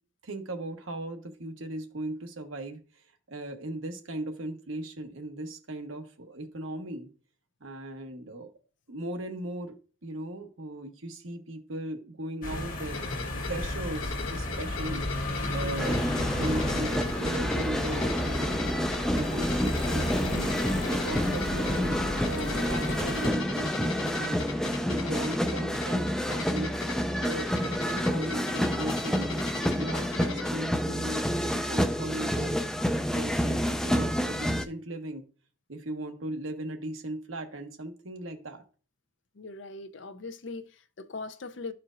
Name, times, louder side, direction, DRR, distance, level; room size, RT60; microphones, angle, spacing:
voice 1, 0.2-7.1 7.6-8.5 8.9-9.8 10.0-13.0 13.5-18.7 19.1-20.5 20.8-22.0 22.3-24.4 24.9-26.8 27.2-29.3 29.8-32.6 33.1-35.3 35.7-38.6, right 1 dB, 80° right, 1.1 m, -37 dB
sound 1, 12.4-23.3, left 1 dB, 45° left, 1.3 m, -33 dB
sound 2, 12.9-30.5, left 4 dB, 85° left, 1.2 m, -39 dB
sound 3, 15.8-34.6, equal, 5° left, 0.4 m, -29 dB
voice 2, 39.3-41.7, left 3 dB, 60° left, 0.6 m, -40 dB
13.0 x 4.4 x 2.5 m
head